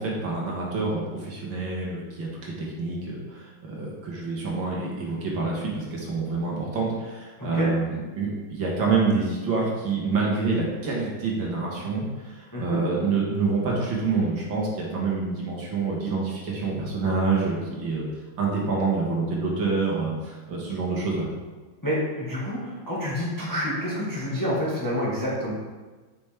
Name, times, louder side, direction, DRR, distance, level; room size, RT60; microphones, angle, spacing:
voice 1, 0.0-12.0 12.6-18.1 18.4-21.3, right 4 dB, 65° right, -3 dB, 2.1 m, -27 dB
voice 2, 7.4-7.7 12.5-12.8 21.8-25.5, equal, 10° left, -7 dB, 1.3 m, -28 dB
7.1 x 6.0 x 3.4 m, 1.3 s
omnidirectional pair, 2.3 m